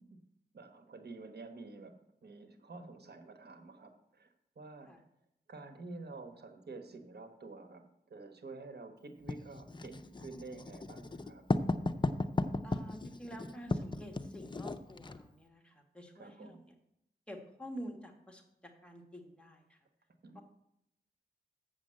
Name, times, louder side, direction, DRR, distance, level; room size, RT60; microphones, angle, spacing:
voice 1, 0.5-1.9 2.2-5.0 5.5-7.8 8.1-11.4 16.1-16.6 20.2-20.4, right 3 dB, 80° right, 6 dB, 1.2 m, -49 dB
Writing, 9.3-15.2, left 2 dB, 30° left, 0.6 m, -35 dB
voice 2, 12.6-16.6 17.3-19.8 20.3-20.4, equal, 5° left, 2 dB, 1.6 m, -48 dB
7.2 x 6.4 x 7.5 m, 0.80 s
wide cardioid pair, 85°, 17 cm